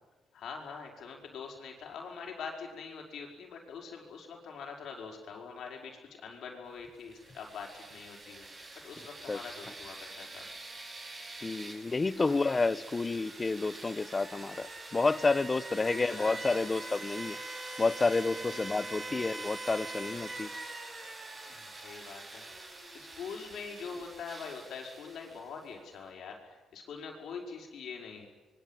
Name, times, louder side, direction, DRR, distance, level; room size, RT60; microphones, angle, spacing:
voice 1, 0.3-10.4 11.8-12.4 15.8-16.4 18.4-19.3 21.5-22.4 22.9-28.3, left 5 dB, 70° left, 1 dB, 5.7 m, -44 dB
sound 1, 7.0-25.7, right 2 dB, 30° right, 6.7 m, -44 dB
voice 2, 11.4-17.4 17.8-20.5, left 3 dB, 25° left, 18 dB, 1.1 m, -30 dB
26.5 x 22.5 x 9.3 m, 1.2 s
cardioid pair, 90°, 0 cm